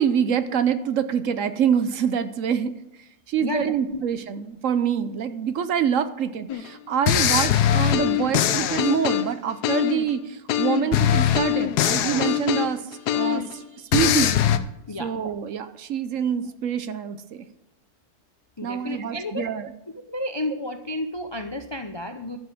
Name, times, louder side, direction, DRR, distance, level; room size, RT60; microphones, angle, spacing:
voice 1, 0.0-14.4 15.0-17.5 18.6-19.7, right 8 dB, 60° right, 12 dB, 1.0 m, -26 dB
voice 2, 3.4-4.0 14.9-15.1 18.6-19.5 20.1-22.4, left 1 dB, 45° left, 7 dB, 0.3 m, -31 dB
sound 1, 6.5-6.7 7.1-10.1 10.5-13.5 13.9-14.6, left 10 dB, 85° left, 1.3 m, -22 dB
12.0 x 7.3 x 7.2 m, 0.92 s
omnidirectional pair, 1.7 m